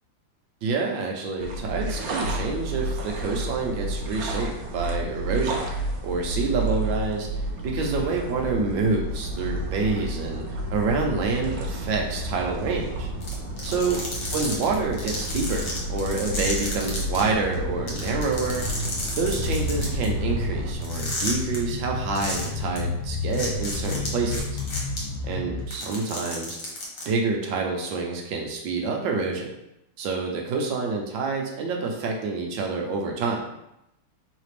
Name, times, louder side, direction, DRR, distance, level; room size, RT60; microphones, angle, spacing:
voice 1, 0.6-5.7 6.0-7.3 7.6-10.4 10.7-13.1 13.6-14.0 14.3-18.7 19.2-24.6 25.2-26.6 27.1-29.5 30.0-33.4, right 4 dB, 70° right, 1 dB, 1.3 m, -27 dB
sound 1, 1.4-20.7, right 1 dB, 90° right, 0.7 m, -31 dB
sound 2, 13.2-17.2 17.5-17.6 17.9-20.0 20.8-21.6 22.1-22.5 22.8-22.9 23.3-25.0 25.6-27.0, left 2 dB, 45° left, 1.3 m, -32 dB
sound 3, 19.2-25.7, left 3 dB, 80° left, 1.4 m, -31 dB
4.0 x 3.3 x 3.2 m, 0.83 s
omnidirectional pair, 2.4 m